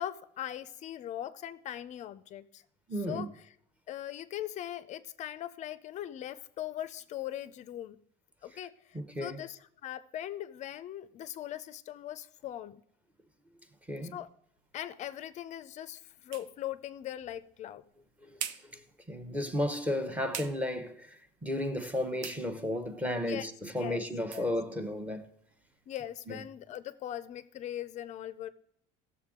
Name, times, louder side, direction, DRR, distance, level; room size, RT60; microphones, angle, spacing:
voice 1, 0.0-2.6 3.1-3.3 3.9-8.0 8.4-12.8 14.1-14.3 14.7-17.8 23.3-23.5 23.8-24.0 24.3-24.5 25.9-28.5, left 12 dB, 35° left, 0.4 m, -40 dB
voice 2, 2.9-3.3 8.9-9.4 13.9-14.2 18.2-18.4 18.7-18.8 19.1-25.3 26.3-26.4, left 1 dB, 5° right, 0.8 m, -33 dB
sound 1, 14.6-26.1, right 9 dB, 70° right, 0.8 m, -49 dB
15.5 x 6.9 x 3.6 m
cardioid pair, 150°, 20 cm